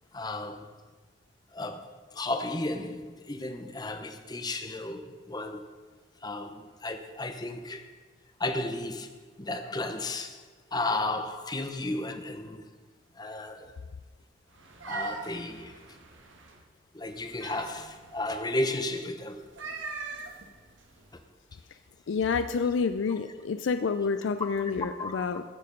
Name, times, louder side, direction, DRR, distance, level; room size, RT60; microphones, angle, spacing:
voice 1, 0.1-0.7 1.5-5.7 6.2-7.8 8.4-9.1 9.4-10.4 10.7-12.6 13.2-13.7 14.9-15.7 16.9-19.4 25.0-25.3, left 2 dB, 20° left, 0.8 m, -33 dB
sound 1, 14.5-16.6 17.1-18.3 19.4-21.2, right 3 dB, 85° right, 1.5 m, -41 dB
voice 2, 22.1-25.4, left 5 dB, 80° left, 0.4 m, -28 dB
14.5 x 6.9 x 5.2 m
head